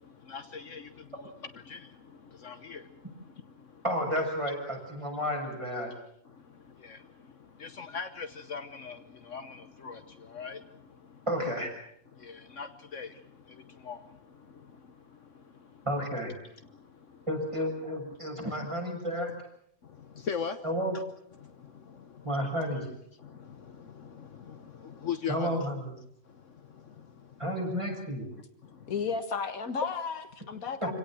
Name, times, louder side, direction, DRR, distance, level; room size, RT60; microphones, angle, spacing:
voice 1, 0.0-3.8 6.3-11.2 12.1-15.8 16.6-17.3 19.8-20.6 21.3-22.3 23.2-25.7 26.2-27.4 28.6-28.9 29.8-29.9, left 6 dB, 65° left, 1.4 m, -42 dB
voice 2, 3.8-5.9 11.3-11.7 15.9-16.3 17.3-19.4 20.6-21.0 22.2-22.9 25.3-25.9 27.4-28.3, equal, 20° right, 7.1 m, -31 dB
voice 3, 28.9-31.0, left 5 dB, 85° left, 2.1 m, -33 dB
26.5 x 17.5 x 7.6 m
omnidirectional pair, 1.4 m